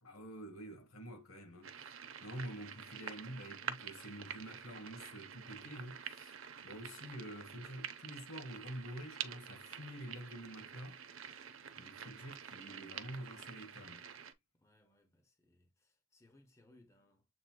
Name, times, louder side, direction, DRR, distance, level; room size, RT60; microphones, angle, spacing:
voice 1, 0.0-11.0 11.8-14.1, right 1 dB, 85° left, 1.3 m, -48 dB
sound 1, 1.6-14.3, right 8 dB, 75° right, 0.7 m, -48 dB
voice 2, 14.5-17.3, left 1 dB, 15° left, 0.9 m, -67 dB
7.6 x 2.9 x 2.2 m
head